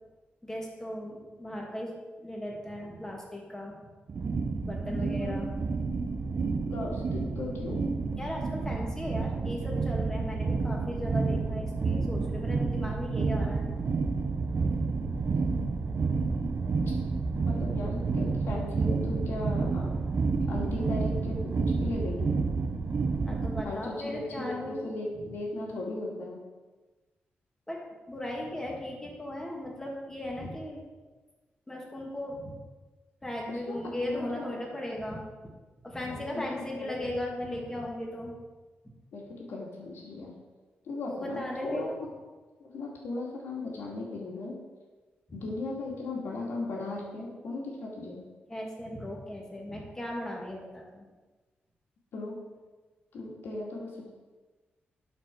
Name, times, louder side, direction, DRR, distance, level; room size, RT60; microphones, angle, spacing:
voice 1, 0.4-1.9 2.2-3.8 4.6-5.5 8.2-13.7 14.1-14.5 23.2-24.9 27.7-27.8 28.1-30.8 31.7-32.5 33.2-35.5 35.8-38.3 41.1-41.9 48.5-51.1, left 1 dB, 15° left, -2 dB, 2.2 m, -37 dB
sound 1, 4.1-23.6, right 4 dB, 55° right, 0.7 m, -30 dB
voice 2, 4.8-5.5 6.4-7.9 17.5-19.9 20.5-22.3 23.6-26.4 33.5-33.8 34.1-34.8 36.1-36.4 36.8-37.0 39.1-40.3 40.8-41.9 42.6-44.6 45.3-48.2 52.1-52.4 53.1-54.1, left 2 dB, 90° left, -2 dB, 2.2 m, -37 dB
11.5 x 4.7 x 4.6 m, 1.3 s
cardioid pair, 90°, 4 cm